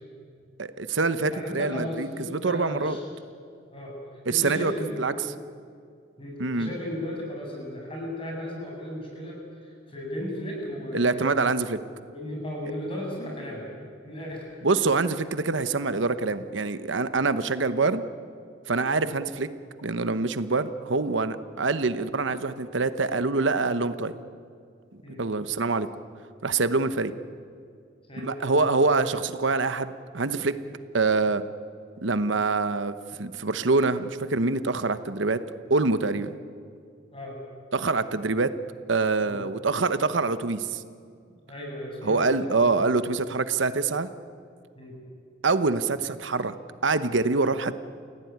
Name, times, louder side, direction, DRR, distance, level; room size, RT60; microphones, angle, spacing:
voice 1, 0.6-3.0 4.3-4.7 5.0-5.1 6.4-6.7 10.9-11.8 14.6-18.0 18.7-19.5 19.8-24.1 25.2-25.9 26.4-27.1 28.2-30.5 30.9-31.4 32.0-35.4 35.7-36.3 37.7-38.5 38.9-40.8 42.0-44.1 45.4-46.5 46.8-47.7, right 3 dB, 75° right, 12 dB, 1.0 m, -25 dB
voice 2, 1.2-3.0 3.7-4.0 4.3-5.2 6.2-9.4 9.6-11.5 12.1-13.7 14.0-14.5 18.9-19.1 25.0-25.2 28.1-28.3 28.6-28.7 37.1-37.3 39.2-39.4 41.5-42.8 44.8-45.0, left 1 dB, 30° left, -1 dB, 7.2 m, -35 dB
29.0 x 17.0 x 9.5 m, 2.3 s
head